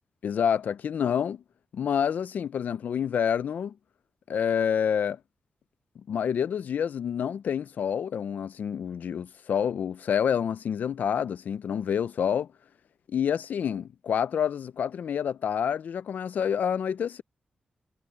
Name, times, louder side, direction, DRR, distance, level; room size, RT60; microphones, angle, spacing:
voice 1, 0.2-1.4 1.7-3.7 4.3-5.2 6.1-12.5 13.1-17.2, left 8 dB, 85° left, 0.5 m, -28 dB
cardioid pair, 80°, 3 cm